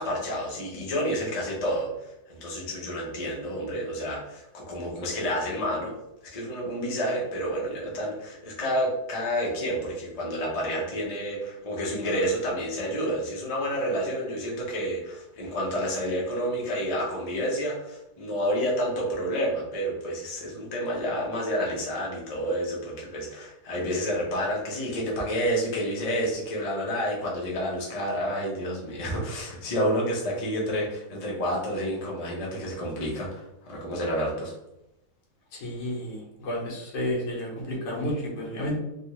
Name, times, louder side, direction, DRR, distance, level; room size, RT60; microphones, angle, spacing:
voice 1, 0.0-5.9 6.2-34.5, equal, 35° left, -3 dB, 0.6 m, -29 dB
voice 2, 35.5-38.8, left 1 dB, 85° left, -2 dB, 1.4 m, -31 dB
3.4 x 2.4 x 2.9 m, 0.90 s
omnidirectional pair, 1.7 m